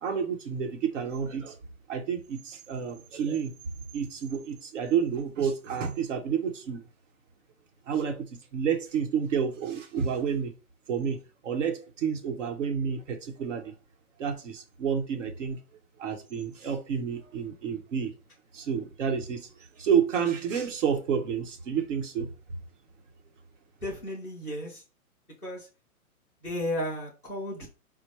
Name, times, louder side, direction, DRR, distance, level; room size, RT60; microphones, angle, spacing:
voice 1, 0.0-1.6 1.9-3.5 3.9-6.8 7.9-8.2 8.5-10.5 10.9-13.7 14.2-15.6 16.0-18.1 18.5-19.5 19.8-22.3, right 7 dB, 60° right, 1.1 m, -29 dB
voice 2, 23.8-24.8 25.4-25.7 26.4-27.7, left 1 dB, 5° right, 0.4 m, -33 dB
4.2 x 2.2 x 4.5 m
hypercardioid pair, 130°, 43 cm